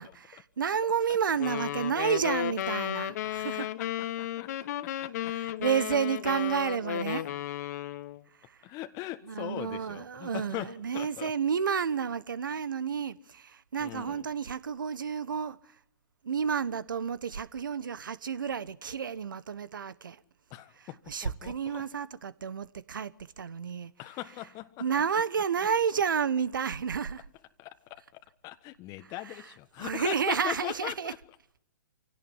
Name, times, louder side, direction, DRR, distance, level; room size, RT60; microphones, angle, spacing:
voice 1, 0.0-3.7 5.3-7.3 8.4-8.6 9.2-15.6 16.2-20.2 21.1-23.9 24.8-27.2 29.3-29.4 29.8-31.1, right 7 dB, 75° right, 1.2 m, -31 dB
sound 1, 1.4-8.2, left 12 dB, 55° left, 1.5 m, -34 dB
voice 2, 3.2-3.9 4.2-5.4 8.6-11.3 13.8-14.2 20.5-21.9 24.0-24.7 27.6-31.2, left 17 dB, 30° left, 1.4 m, -40 dB
27.0 x 17.0 x 9.8 m
hypercardioid pair, 120°, 11 cm